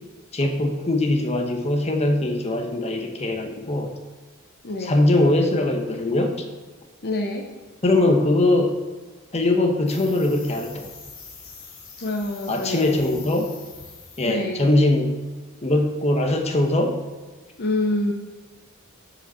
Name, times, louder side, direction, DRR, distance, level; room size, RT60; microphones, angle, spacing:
voice 1, 0.3-3.9 4.8-6.4 7.8-8.8 9.3-10.9 12.5-13.5 14.2-15.2 15.6-17.0, left 2 dB, 30° left, 3 dB, 1.0 m, -21 dB
voice 2, 4.6-5.1 7.0-7.5 12.0-13.2 14.2-14.7 17.6-18.1, left 2 dB, 50° left, 1 dB, 0.8 m, -27 dB
sound 1, 9.9-14.4 14.7-15.0, left 5 dB, 80° left, 2.1 m, -44 dB
7.3 x 5.1 x 7.0 m, 1.4 s
head